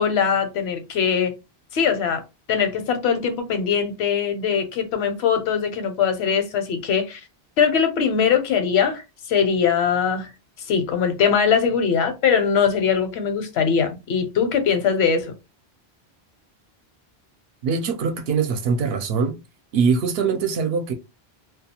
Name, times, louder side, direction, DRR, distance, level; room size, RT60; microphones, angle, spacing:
voice 1, 0.0-1.3 1.7-2.2 2.5-7.2 7.6-9.0 9.3-10.3 10.7-15.3, left 7 dB, 85° left, 0.9 m, -21 dB
voice 2, 17.6-19.4 19.7-20.9, right 5 dB, 70° right, 0.8 m, -22 dB
2.3 x 2.2 x 2.8 m
omnidirectional pair, 1.1 m